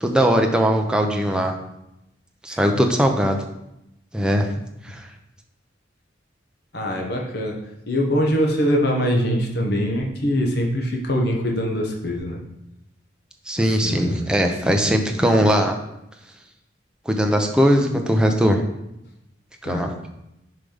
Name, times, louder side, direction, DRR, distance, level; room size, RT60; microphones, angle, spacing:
voice 1, 0.0-1.5 2.4-3.4 4.1-4.5 4.8-5.1 13.5-15.8 17.1-18.6 19.6-19.9, equal, 5° right, 3 dB, 0.7 m, -20 dB
voice 2, 6.7-7.6 7.9-12.4 13.8-14.3 14.7-15.2 19.6-19.9, equal, 60° left, 0 dB, 1.2 m, -23 dB
5.9 x 4.9 x 5.1 m, 0.85 s
head